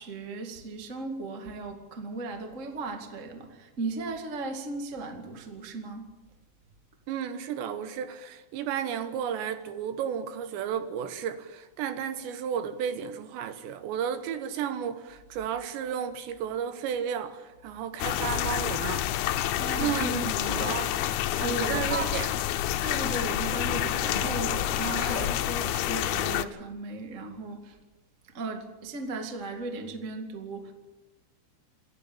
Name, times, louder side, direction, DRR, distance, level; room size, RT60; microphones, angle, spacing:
voice 1, 0.0-6.1 19.5-21.1 21.3-22.2 22.8-27.8 28.2-30.7, right 3 dB, 35° right, 1.1 m, -36 dB
voice 2, 7.1-19.1 19.8-20.1 20.5-21.0 21.4-22.3, right 8 dB, 80° right, 3.4 m, -33 dB
sound 1, 18.0-26.5, left 13 dB, 90° left, 3.2 m, -28 dB
Zipper (clothing), 20.4-20.9 21.1-21.3 21.6-21.7 22.1-22.2 22.9-23.0 23.3-25.6, left 2 dB, 15° left, 2.3 m, -39 dB
28.0 x 11.0 x 8.6 m
omnidirectional pair, 5.2 m